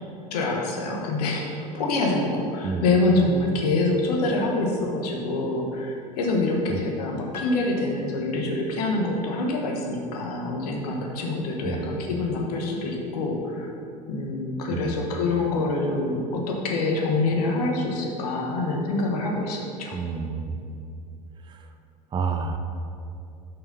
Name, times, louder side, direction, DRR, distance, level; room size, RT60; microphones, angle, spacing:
voice 1, 0.3-13.7 14.1-20.0, left 2 dB, 70° left, 0 dB, 1.2 m, -26 dB
Piano, 7.3-9.0, left 3 dB, 90° left, 0.8 m, -42 dB
voice 2, 19.9-20.7 21.5-21.7 22.1-22.6, right 5 dB, 25° right, 6 dB, 0.5 m, -29 dB
5.5 x 4.6 x 5.4 m, 2.6 s
hypercardioid pair, 85°, 20 cm